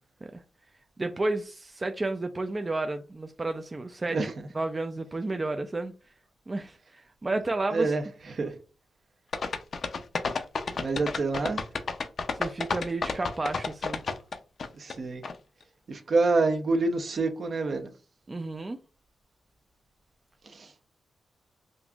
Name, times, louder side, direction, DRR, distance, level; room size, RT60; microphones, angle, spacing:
voice 1, 1.0-5.9 6.5-7.9 12.3-14.0 18.3-18.8, right 2 dB, 30° right, 0.4 m, -32 dB
voice 2, 7.7-8.0 8.3-8.5 10.7-11.6 14.8-15.2 15.9-17.9 20.5-20.7, right 3 dB, 55° right, 0.7 m, -27 dB
sound 1, 9.3-14.9 15.2-15.3, left 4 dB, 60° left, 0.4 m, -30 dB
5.2 x 2.5 x 2.3 m
cardioid pair, 60°, 0 cm